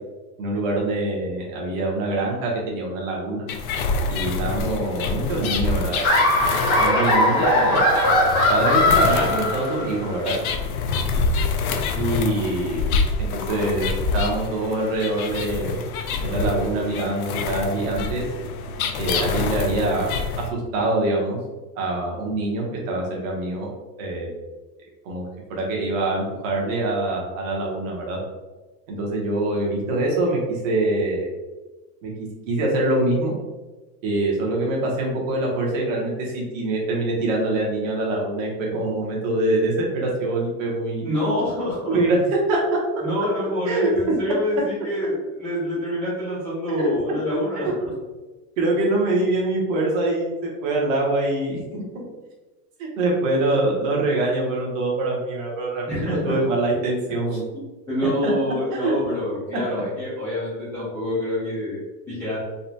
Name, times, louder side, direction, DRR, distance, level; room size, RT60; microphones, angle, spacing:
voice 1, 0.4-3.4 4.1-6.3 6.8-7.9 8.5-10.3 12.0-15.8 16.2-18.2 19.0-21.4 21.7-23.7 24.0-24.4 25.0-25.2 25.5-28.2 28.9-31.3 32.0-32.1 32.5-33.3 34.0-41.1 41.9-42.8 43.7-43.9 46.8-46.9 47.5-47.7 48.6-52.0 52.8-57.4 58.0-58.3 58.7-58.9, right 2 dB, 50° right, -2 dB, 1.2 m, -24 dB
sound 1, 3.5-20.5, left 4 dB, 60° left, 0.5 m, -27 dB
Laughter, 6.0-10.1, left 1 dB, 30° left, 0.8 m, -19 dB
voice 2, 41.0-42.0 43.0-47.7 55.9-56.3 57.5-61.8 62.1-62.4, left 1 dB, 5° left, -15 dB, 0.5 m, -26 dB
4.0 x 2.4 x 2.8 m, 1.2 s
supercardioid pair, 165°, 49 cm